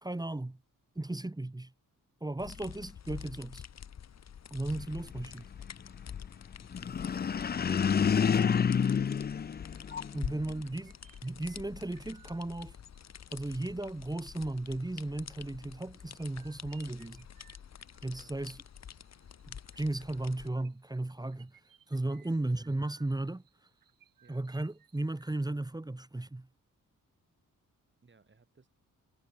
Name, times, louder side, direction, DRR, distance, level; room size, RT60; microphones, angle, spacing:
voice 1, 0.0-0.6 0.9-1.7 2.2-3.6 4.5-5.5 10.1-10.9 11.2-12.7 13.3-17.3 18.0-18.6 19.5-21.5 21.9-23.4 24.3-26.5, right 2 dB, 10° right, 1.5 m, -35 dB
sound 1, 2.4-20.5, left 8 dB, 50° left, 1.0 m, -47 dB
sound 2, 6.7-10.3, left 7 dB, 30° left, 0.5 m, -28 dB
sound 3, 9.0-25.5, right 9 dB, 80° right, 6.4 m, -66 dB
voice 2, 10.4-10.9 18.1-18.4 22.2-22.4 24.2-24.4 28.0-28.7, right 4 dB, 35° right, 7.3 m, -61 dB
cardioid pair, 100°, 33 cm